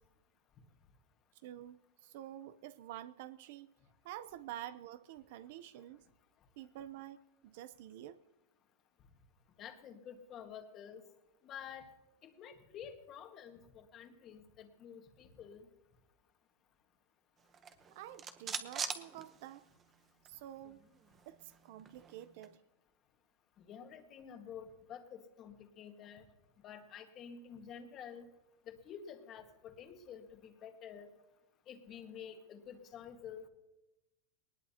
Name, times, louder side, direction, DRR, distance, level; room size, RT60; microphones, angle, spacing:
voice 1, 1.3-3.7 4.0-6.1 6.6-8.2 17.9-19.7 20.2-20.8 21.3-22.6, right 12 dB, 50° right, 0.6 m, -49 dB
voice 2, 9.6-11.0 11.4-11.9 12.2-15.7 23.6-26.2 26.6-28.2 28.7-31.1 31.7-33.5, left 8 dB, 25° left, 1.6 m, -50 dB
sound 1, 17.5-19.9 20.3-20.4 20.6-22.6, right 6 dB, 20° right, 0.9 m, -44 dB
20.0 x 19.5 x 2.9 m
supercardioid pair, 165°, 0 cm